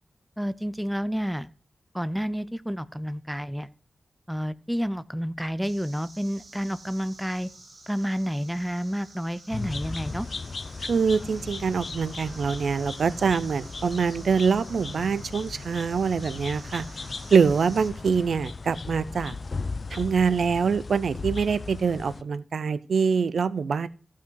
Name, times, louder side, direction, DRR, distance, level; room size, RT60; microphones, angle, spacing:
voice 1, 0.4-1.5 1.9-3.7 4.3-7.5 7.9-10.3, equal, 5° right, 15 dB, 0.5 m, -30 dB
sound 1, 5.6-17.9, right 2 dB, 50° right, 3.4 m, -49 dB
sound 2, 9.5-22.2, left 4 dB, 50° left, 0.6 m, -37 dB
voice 2, 10.8-16.9 17.3-19.4 19.9-23.9, right 5 dB, 80° right, 17 dB, 0.5 m, -24 dB
15.0 x 5.7 x 4.6 m, 0.39 s
wide cardioid pair, 100°, 0 cm